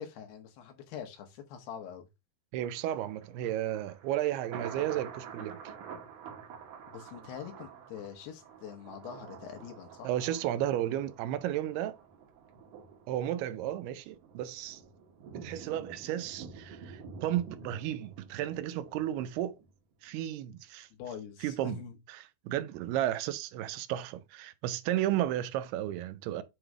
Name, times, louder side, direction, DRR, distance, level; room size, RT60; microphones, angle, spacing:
voice 1, 0.0-2.1 6.9-10.2 20.9-22.0, left 8 dB, 80° left, 3.2 m, -44 dB
voice 2, 2.5-5.6 10.0-12.0 13.1-14.8 15.3-19.6 20.0-20.9 21.4-21.8 22.1-26.4, right 12 dB, 80° right, 2.6 m, -33 dB
Thunder, 2.6-19.7 20.1-20.2, right 6 dB, 65° right, 2.4 m, -48 dB
7.7 x 3.2 x 4.7 m
omnidirectional pair, 4.6 m